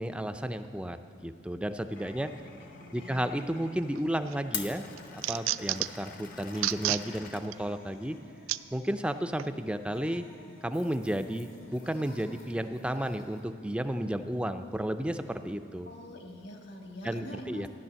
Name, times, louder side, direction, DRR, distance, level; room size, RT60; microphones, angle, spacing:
voice 1, 0.0-2.3 2.9-4.8 5.1-8.2 8.7-10.3 10.6-15.9 17.0-17.7, right 1 dB, 5° right, 9 dB, 0.4 m, -33 dB
Glass, 1.9-8.2, left 7 dB, 45° left, 0.8 m, -45 dB
voice 2, 2.7-3.3 15.9-17.7, left 1 dB, 60° left, 3 dB, 1.7 m, -44 dB
sound 1, 4.0-4.4 4.8-6.1 6.5-7.0 7.5-7.6 8.5-8.6 9.4-9.5, right 15 dB, 80° right, 0.3 m, -30 dB
sound 2, 6.5-13.4, left 2 dB, 75° left, 3.3 m, -58 dB
13.5 x 10.5 x 7.5 m, 2.4 s
head